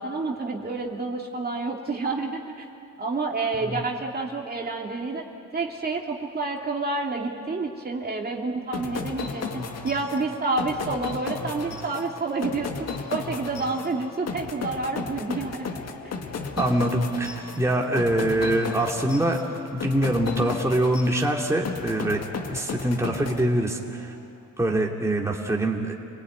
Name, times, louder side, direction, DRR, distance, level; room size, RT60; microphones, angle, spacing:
voice 1, 0.0-2.6 3.0-5.2 5.5-15.8, right 3 dB, 30° right, 0 dB, 2.7 m, -29 dB
sound 1, 8.7-24.0, left 5 dB, 55° left, 2.0 m, -35 dB
voice 2, 16.6-19.4 19.7-22.2 22.5-24.1 24.6-25.9, right 1 dB, 10° right, -1 dB, 2.8 m, -24 dB
28.5 x 19.0 x 9.6 m, 2.5 s
cardioid pair, 90°, 30 cm